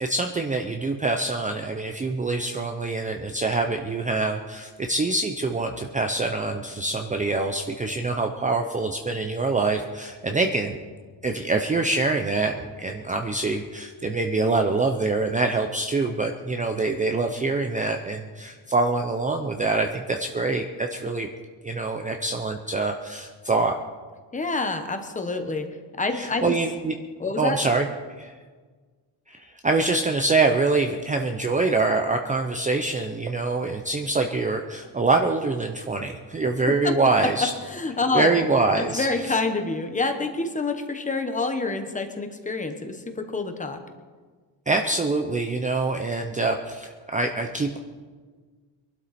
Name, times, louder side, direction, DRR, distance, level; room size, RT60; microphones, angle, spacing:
voice 1, 0.0-10.8 11.2-21.3 21.6-23.8 26.1-26.9 27.4-27.9 28.2-28.3 29.3-37.5 38.1-39.3 44.7-47.8, right 3 dB, 15° right, 4 dB, 0.6 m, -25 dB
voice 2, 24.3-25.7 26.0-26.6 27.2-27.6 36.8-36.9 37.7-38.3 38.8-43.8, left 3 dB, 15° left, 6 dB, 1.2 m, -27 dB
22.5 x 12.0 x 4.2 m, 1.5 s
cardioid pair, 180°, 44 cm